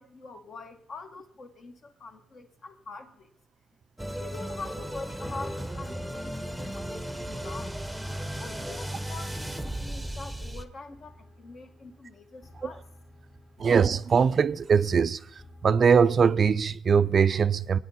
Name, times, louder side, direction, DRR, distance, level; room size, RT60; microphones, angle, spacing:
voice 1, 0.0-3.3 4.2-7.8 8.4-12.9, left 3 dB, 55° left, 1.4 m, -44 dB
sound 1, 4.0-10.6, right 1 dB, ahead, 0.8 m, -35 dB
sound 2, 5.2-16.0, left 1 dB, 35° left, 3.8 m, -50 dB
voice 2, 13.6-15.2 15.6-17.8, right 6 dB, 45° right, 0.4 m, -21 dB
23.0 x 9.1 x 4.2 m
cardioid pair, 90°, 0 cm